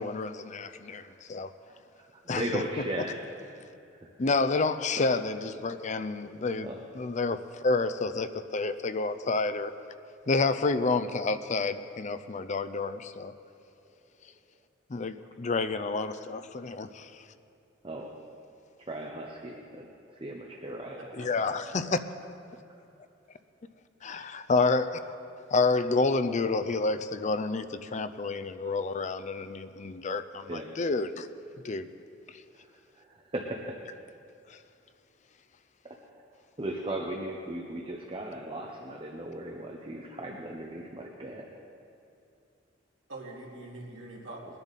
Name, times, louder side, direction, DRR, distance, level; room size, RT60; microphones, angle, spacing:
voice 1, 0.0-1.5 2.3-2.6 4.2-9.7 10.3-13.3 14.9-17.2 21.1-22.0 24.0-25.1 25.5-31.3 31.6-31.9 34.5-34.6, left 3 dB, 40° left, 11 dB, 0.5 m, -29 dB
voice 2, 0.8-1.2 1.7-3.6 3.9-4.1 6.6-6.8 15.8-16.0 17.8-18.1 18.9-19.9 20.2-21.0 30.4-30.7 33.0-33.8 35.8-36.0 36.6-41.5, right 1 dB, 30° right, 1 dB, 0.9 m, -37 dB
voice 3, 21.0-21.8 43.1-44.5, right 2 dB, 85° right, -2 dB, 2.5 m, -44 dB
21.0 x 10.5 x 4.1 m, 2.7 s
head